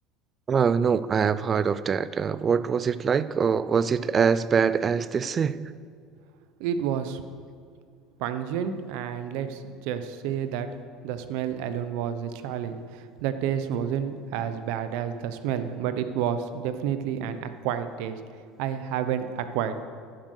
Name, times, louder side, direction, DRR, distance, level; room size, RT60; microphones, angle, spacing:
voice 1, 0.5-5.6, right 6 dB, 20° right, 16 dB, 0.3 m, -24 dB
voice 2, 6.6-7.2 8.2-10.7 11.0-18.2 18.6-19.8, right 9 dB, 65° right, 11 dB, 0.8 m, -30 dB
10.5 x 10.0 x 6.5 m, 2.2 s
cardioid pair, 175°, 0 cm